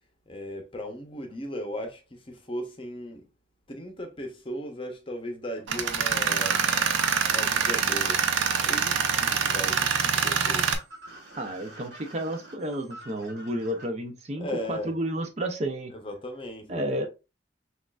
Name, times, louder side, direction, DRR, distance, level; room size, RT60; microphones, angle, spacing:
voice 1, 0.3-3.3 3.7-6.6 7.3-8.2 8.7-10.7 14.4-14.9 15.9-17.1, equal, 25° left, 0.7 m, -37 dB
Tools, 5.7-10.7, right 6 dB, 85° right, 0.6 m, -25 dB
sound 1, 6.4-13.8, right 2 dB, 60° right, 1.6 m, -45 dB
voice 2, 11.4-15.9 16.7-17.1, right 1 dB, 35° right, 0.5 m, -31 dB
6.2 x 2.4 x 2.3 m
head